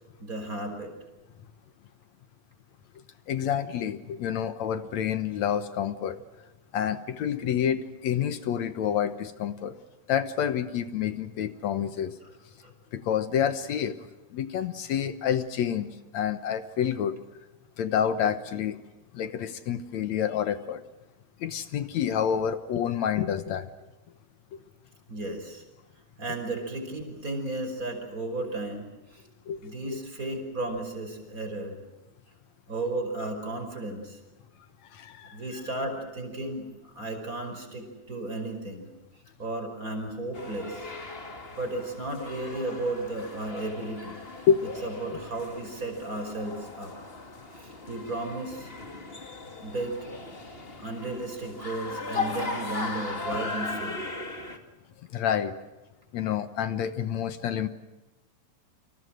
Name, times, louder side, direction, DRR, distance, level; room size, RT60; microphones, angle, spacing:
voice 1, 0.2-0.9 12.2-12.3 12.6-12.7 25.1-25.6 26.2-29.3 29.6-31.8 32.7-34.2 35.3-38.9 39.4-40.9 41.6-44.2 44.8-46.9 47.5-48.7 49.6-50.1 50.8-54.1, right 2 dB, 20° right, 5 dB, 5.7 m, -34 dB
voice 2, 3.3-6.2 6.7-9.7 10.1-12.2 12.9-14.0 14.3-17.2 17.8-18.8 19.1-20.8 21.4-23.7 24.5-24.6 29.5-30.0 34.9-35.6 44.5-44.6 55.1-55.6 56.1-57.7, left 8 dB, 65° left, 12 dB, 1.9 m, -28 dB
sound 1, 40.3-54.6, left 3 dB, 20° left, 1.9 m, -38 dB
30.0 x 26.0 x 6.4 m, 1.0 s
omnidirectional pair, 4.2 m